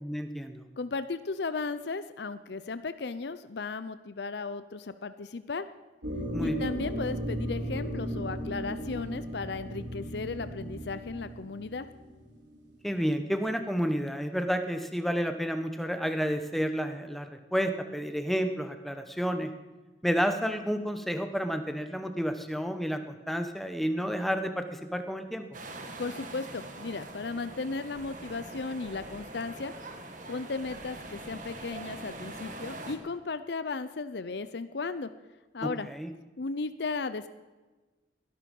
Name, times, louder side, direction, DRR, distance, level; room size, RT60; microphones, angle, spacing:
voice 1, 0.0-0.7 6.3-6.7 12.8-19.5 20.0-25.4 35.6-36.1, equal, ahead, 7 dB, 1.0 m, -30 dB
voice 2, 0.8-5.7 6.4-11.9 26.0-29.7 30.3-35.1 35.5-35.9 36.4-37.3, left 4 dB, 65° left, 13 dB, 0.6 m, -35 dB
sound 1, 6.0-12.6, equal, 75° right, 3.7 m, -36 dB
sound 2, 25.5-33.0, right 2 dB, 45° right, 1.8 m, -43 dB
19.0 x 11.5 x 5.4 m, 1.2 s
head